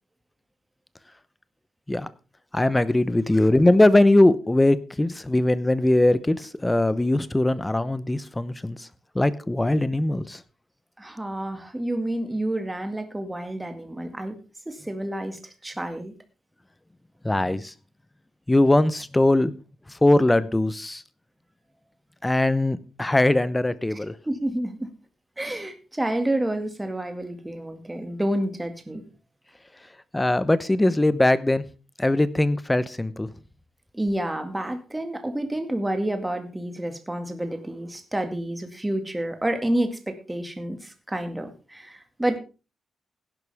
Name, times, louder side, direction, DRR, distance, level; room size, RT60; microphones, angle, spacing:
voice 1, 2.5-8.9 9.1-10.4 17.2-17.7 18.5-19.5 20.0-21.0 22.2-24.1 30.1-31.7 32.0-33.3, left 1 dB, 10° left, 0.8 m, -21 dB
voice 2, 11.0-14.4 14.7-16.1 24.3-24.9 25.4-29.0 33.9-42.4, right 1 dB, 10° right, 2.1 m, -29 dB
16.5 x 11.0 x 3.5 m
wide cardioid pair, 140°, 0 cm